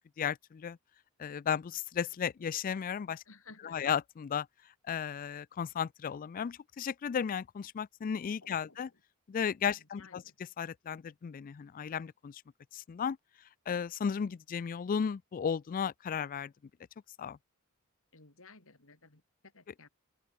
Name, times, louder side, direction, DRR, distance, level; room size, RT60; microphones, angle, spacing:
voice 1, 0.2-0.8 1.2-3.2 3.6-4.5 4.9-8.9 9.3-10.2 10.6-12.4 12.7-13.2 13.7-16.5 17.2-17.4, left 7 dB, 40° left, 0.3 m, -34 dB
voice 2, 3.3-3.9 8.4-8.8 9.8-10.4 18.1-19.9, left 4 dB, 65° left, 4.0 m, -56 dB
open air
head